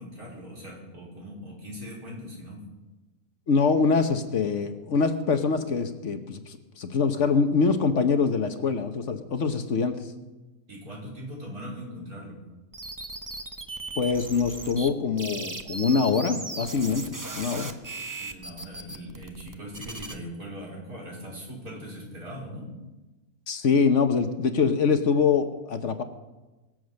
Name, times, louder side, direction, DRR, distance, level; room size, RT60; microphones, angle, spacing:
voice 1, 0.0-2.6 10.7-12.4 18.2-22.7, equal, 80° right, -3 dB, 5.1 m, -40 dB
voice 2, 3.5-10.0 14.0-17.1 17.3-17.7 23.5-26.0, left 5 dB, 55° left, 8 dB, 1.3 m, -24 dB
sound 1, 12.7-14.9 15.2-20.2, right 2 dB, 15° right, 0.8 m, -37 dB
22.5 x 7.8 x 6.5 m, 1.1 s
omnidirectional pair, 1.5 m